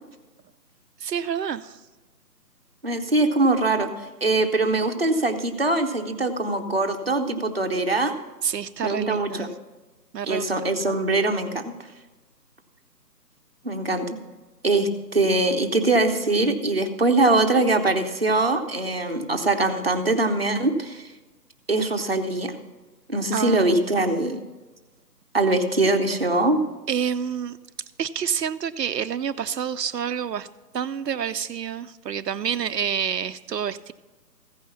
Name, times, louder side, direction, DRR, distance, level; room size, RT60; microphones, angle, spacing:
voice 1, 1.0-1.8 8.4-9.5 10.1-10.5 23.3-23.9 26.9-27.6 28.0-30.5 30.7-33.9, right 8 dB, 75° right, 11 dB, 0.6 m, -28 dB
voice 2, 2.8-3.9 4.2-8.1 8.8-9.5 10.3-11.7 13.6-14.2 14.6-21.1 21.7-22.5 23.1-24.4 25.3-26.6, right 2 dB, 35° right, 4 dB, 0.7 m, -22 dB
15.0 x 5.6 x 6.9 m, 1.2 s
hypercardioid pair, 175°, 50 cm